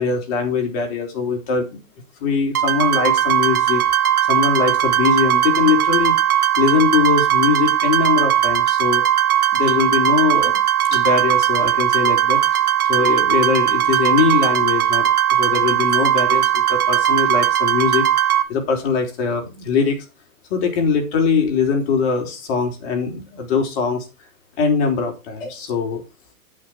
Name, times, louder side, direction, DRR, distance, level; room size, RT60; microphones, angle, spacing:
voice 1, 0.0-1.7 2.2-3.8 4.3-6.1 6.6-9.0 9.5-10.6 10.9-12.6 12.9-18.1 18.5-20.0 20.5-24.1 24.6-26.0, left 5 dB, 45° left, 3 dB, 4.3 m, -21 dB
sound 1, 2.5-18.4, right 11 dB, 85° right, 1.5 m, -18 dB
8.8 x 8.6 x 4.6 m, 0.27 s
hypercardioid pair, 140°, 42 cm